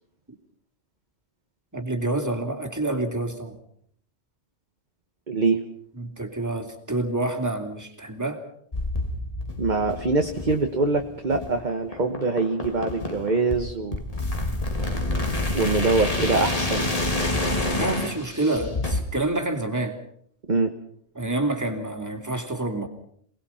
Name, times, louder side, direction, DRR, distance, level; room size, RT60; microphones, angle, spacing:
voice 1, 1.7-3.6 5.9-8.4 17.7-20.0 21.1-22.9, right 2 dB, 15° right, 4 dB, 3.0 m, -28 dB
voice 2, 5.3-5.6 9.6-14.0 15.5-16.9 20.5-20.7, right 3 dB, 40° right, 4 dB, 1.5 m, -24 dB
sound 1, 8.7-19.0, left 2 dB, 30° left, 2.4 m, -28 dB
28.0 x 19.5 x 5.8 m, 0.65 s
omnidirectional pair, 1.3 m